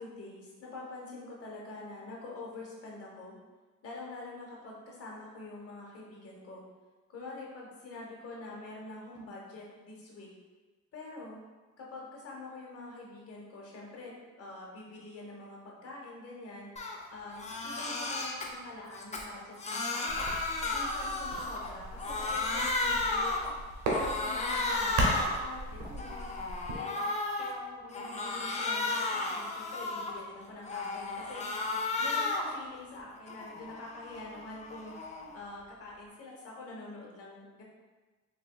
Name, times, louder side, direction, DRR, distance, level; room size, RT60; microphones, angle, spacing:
voice 1, 0.0-3.4 3.8-6.6 7.1-10.3 10.9-11.4 11.8-16.7 17.1-20.3 20.7-23.4 23.9-26.3 26.7-27.0 27.4-31.4 32.0-35.0 35.3-37.6, left 2 dB, 50° left, -3 dB, 0.9 m, -45 dB
Crying sobbing, 16.8-17.0 17.3-18.5 18.9-21.7 22.0-23.5 23.9-25.4 25.8-27.5 27.9-30.2 30.6-32.6 32.9-35.3, left 3 dB, 25° left, 0.4 m, -33 dB
sound 1, 20.1-26.8, right 1 dB, 65° right, 0.9 m, -36 dB
3.3 x 3.0 x 2.2 m, 1.3 s
cardioid pair, 90°, 30 cm